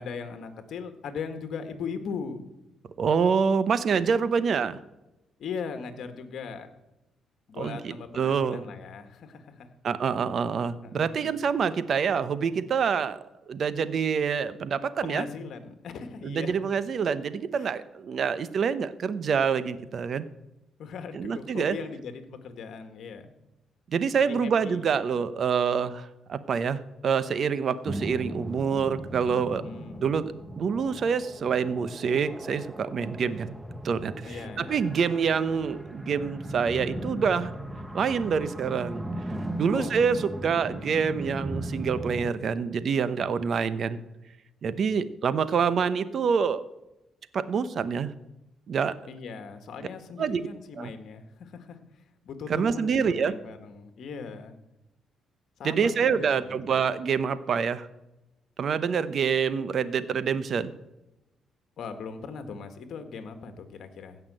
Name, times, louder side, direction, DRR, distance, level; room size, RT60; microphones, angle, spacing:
voice 1, 0.0-2.4 5.4-6.7 7.5-9.7 10.8-11.4 15.0-16.6 17.5-17.7 20.8-23.3 24.3-24.8 29.5-30.1 34.2-34.8 39.7-39.9 49.1-51.8 52.2-54.6 55.6-56.6 61.8-64.2, left 5 dB, 65° left, 8 dB, 1.7 m, -39 dB
voice 2, 3.0-4.8 7.6-8.7 9.8-13.2 13.5-15.2 16.2-20.3 21.1-21.8 23.9-29.6 30.0-33.5 33.8-37.6 37.9-39.1 39.6-44.0 44.6-46.6 47.3-48.1 48.7-48.9 50.2-50.5 50.8-50.9 52.5-53.3 55.6-57.9 58.6-60.7, right 6 dB, 55° right, 14 dB, 0.9 m, -26 dB
sound 1, 27.8-42.3, right 1 dB, 5° right, 0.9 m, -37 dB
16.0 x 6.0 x 7.6 m, 0.95 s
cardioid pair, 90°, 0 cm